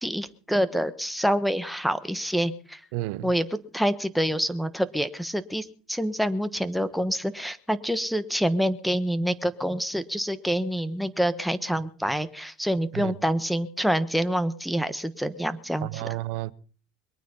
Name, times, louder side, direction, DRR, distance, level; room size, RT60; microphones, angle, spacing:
voice 1, 0.0-2.8 3.2-3.5 3.7-16.0, equal, ahead, 1.2 m, -27 dB
voice 2, 2.9-3.3 12.9-13.1 15.8-16.5, right 17 dB, 70° right, 0.8 m, -31 dB
22.5 x 9.2 x 5.6 m
supercardioid pair, 95°, 0 cm